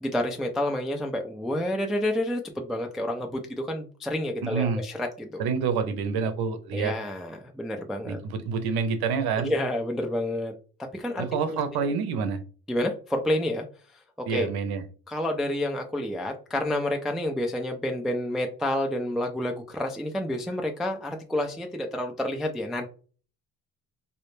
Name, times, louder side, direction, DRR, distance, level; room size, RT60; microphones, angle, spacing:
voice 1, 0.0-5.4 6.7-8.2 9.4-10.5 10.9-11.9 12.7-13.6 14.2-14.5 15.1-22.9, left 1 dB, ahead, 3 dB, 0.3 m, -29 dB
voice 2, 4.4-4.8 5.4-6.9 8.1-9.5 11.2-12.4 14.3-14.8, right 5 dB, 65° right, 9 dB, 0.7 m, -27 dB
2.1 x 2.1 x 3.1 m, 0.38 s
hypercardioid pair, 60°, 41 cm